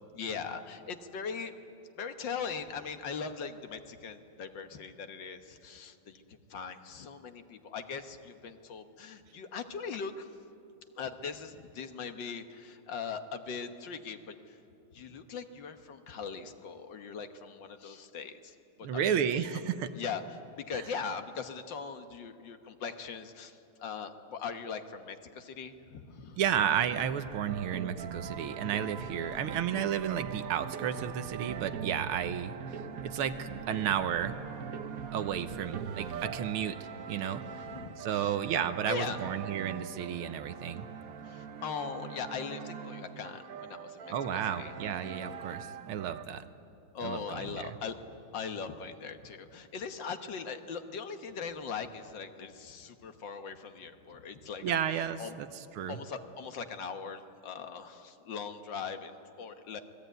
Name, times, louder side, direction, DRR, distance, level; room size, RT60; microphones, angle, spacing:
voice 1, 0.1-1.6 2.0-10.3 11.0-14.6 14.9-18.6 18.9-19.5 19.9-26.4 37.6-38.4 38.9-39.3 41.2-44.7 46.9-48.0 48.3-54.8 55.2-55.3 55.9-59.8, left 6 dB, 60° left, 8 dB, 1.8 m, -40 dB
voice 2, 18.8-19.9 20.7-20.8 26.4-34.4 35.1-37.5 38.0-40.9 44.1-46.4 47.0-47.8 54.6-55.5 55.8-56.0, right 9 dB, 80° right, 11 dB, 1.8 m, -32 dB
sound 1, 26.9-46.2, right 7 dB, 55° right, 1.0 m, -42 dB
27.5 x 20.5 x 9.3 m, 2.7 s
omnidirectional pair, 2.4 m